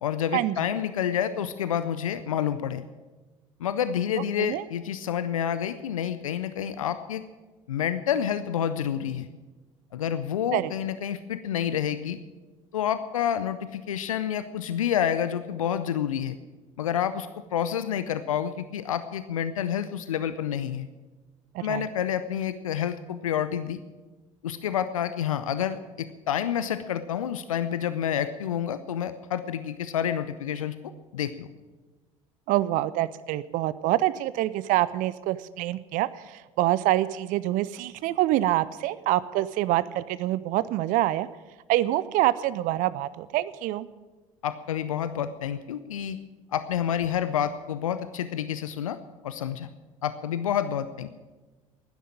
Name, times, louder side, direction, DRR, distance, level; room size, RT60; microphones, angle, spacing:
voice 1, 0.0-2.8 3.6-7.2 7.7-9.3 9.9-12.2 12.7-16.4 16.8-20.9 21.6-23.8 24.4-30.7 31.1-31.5 44.4-46.2 46.5-49.0 49.2-49.7 50.0-51.1, left 9 dB, 80° left, 12 dB, 0.5 m, -28 dB
voice 2, 21.5-21.9 32.5-41.3 41.7-43.9, right 15 dB, 55° right, 17 dB, 0.5 m, -26 dB
12.0 x 10.0 x 8.7 m, 1.2 s
figure-of-eight pair, 65°, 17 cm